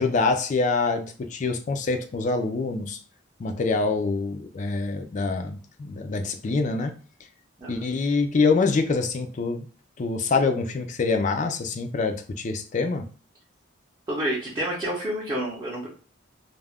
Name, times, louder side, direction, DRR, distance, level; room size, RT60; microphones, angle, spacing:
voice 1, 0.0-3.0 3.4-6.9 7.7-9.7 10.0-13.1, left 4 dB, 40° left, 6 dB, 0.3 m, -25 dB
voice 2, 14.1-15.9, right 1 dB, 20° right, -6 dB, 0.6 m, -29 dB
2.4 x 2.1 x 3.4 m, 0.39 s
head